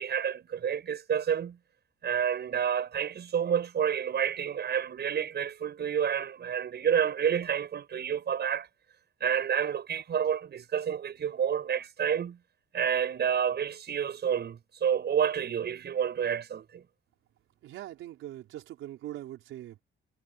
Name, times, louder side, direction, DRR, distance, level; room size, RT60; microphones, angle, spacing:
voice 1, 0.0-1.6 2.0-8.7 9.2-12.4 12.7-16.8, right 8 dB, 55° right, 8.0 m, -29 dB
voice 2, 17.6-19.8, right 13 dB, 85° right, 5.4 m, -42 dB
cardioid pair, 90°, 20 cm